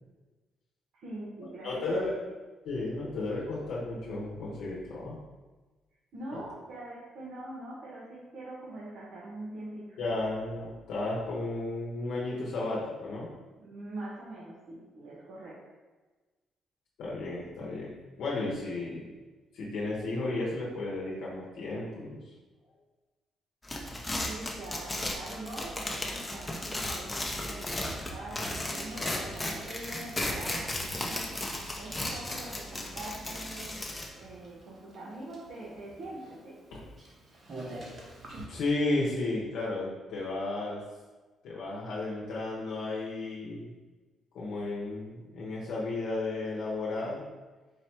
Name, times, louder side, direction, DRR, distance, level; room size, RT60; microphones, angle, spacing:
voice 1, 1.0-2.2 6.1-10.0 13.6-15.6 24.2-31.3 31.8-33.8 34.2-36.6, right 1 dB, 75° right, -6 dB, 1.0 m, -43 dB
voice 2, 1.6-2.1 2.6-5.2 6.3-6.4 10.0-13.3 17.0-17.9 18.2-19.1 19.5-22.2 29.0-29.2 36.7-36.8 38.5-40.8 41.4-43.8 44.3-47.2, left 2 dB, 80° left, -5 dB, 0.8 m, -33 dB
sound 1, 23.6-34.1, left 1 dB, 15° left, 0.6 m, -35 dB
Bicycle, 28.4-38.5, right 1 dB, 50° right, 1.0 m, -49 dB
4.7 x 2.2 x 4.4 m, 1.3 s
cardioid pair, 90°, 0 cm